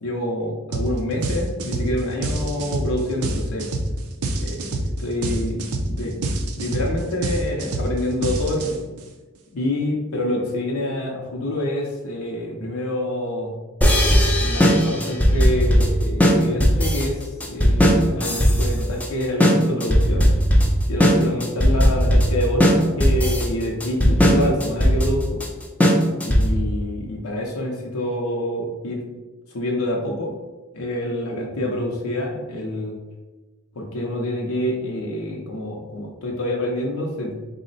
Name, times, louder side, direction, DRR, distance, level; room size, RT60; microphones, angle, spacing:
voice 1, 0.0-3.7 4.4-6.3 6.5-8.8 9.5-13.5 14.4-20.3 20.9-25.4 26.2-29.0 29.5-30.4 30.7-33.0 33.8-37.4, left 1 dB, 75° left, -1 dB, 0.6 m, -27 dB
sound 1, 0.7-0.9 1.2-9.0, right 2 dB, 85° right, 0.5 m, -26 dB
sound 2, 13.8-26.7, equal, 5° left, 0.5 m, -17 dB
3.8 x 2.1 x 3.9 m, 1.2 s
head